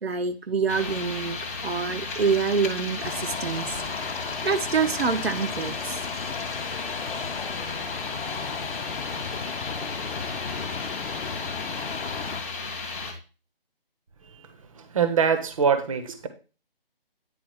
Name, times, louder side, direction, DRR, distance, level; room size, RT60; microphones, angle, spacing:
voice 1, 0.0-3.8 4.4-6.0, right 5 dB, 85° right, 8 dB, 0.9 m, -26 dB
sound 1, 0.7-13.1, left 4 dB, 15° left, 0.6 m, -34 dB
sound 2, 3.0-12.4, left 5 dB, 80° left, 0.7 m, -35 dB
voice 2, 14.7-16.3, right 6 dB, 35° right, 9 dB, 0.7 m, -24 dB
9.2 x 3.6 x 4.8 m, 0.34 s
figure-of-eight pair, 160°, 30 cm